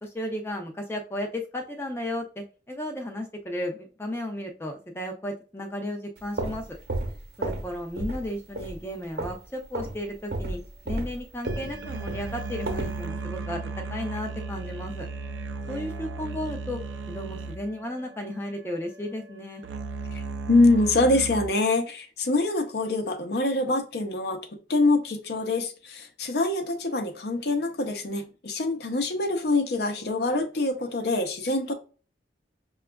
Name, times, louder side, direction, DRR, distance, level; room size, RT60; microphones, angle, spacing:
voice 1, 0.0-6.8 7.4-10.6 10.9-13.6 13.9-15.1 15.7-16.8 17.1-19.6, left 1 dB, 15° left, 3 dB, 0.4 m, -34 dB
sound 1, 6.2-7.7 8.0-8.3 8.6-9.4 9.7-10.0 10.3-13.0, right 1 dB, 65° right, 0.9 m, -32 dB
sound 2, 11.4-21.5, right 3 dB, 85° right, 0.4 m, -36 dB
voice 2, 20.1-24.4 24.7-31.7, left 2 dB, 60° left, 7 dB, 0.6 m, -25 dB
5.9 x 2.3 x 2.2 m, 0.36 s
head